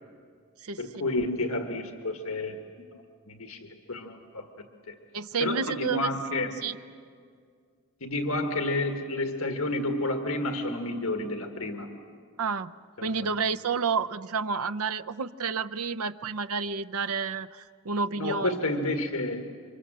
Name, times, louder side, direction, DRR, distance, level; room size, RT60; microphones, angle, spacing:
voice 1, 0.8-2.6 2.9-3.6 3.9-4.5 4.9-5.0 5.4-6.6 8.0-11.9 13.0-13.3 18.1-19.4, left 2 dB, 70° left, 4 dB, 1.7 m, -30 dB
voice 2, 5.1-6.1 6.6-6.8 12.4-12.7 13.0-18.5, right 5 dB, 85° right, 11 dB, 0.7 m, -30 dB
29.0 x 25.5 x 7.6 m, 2.1 s
head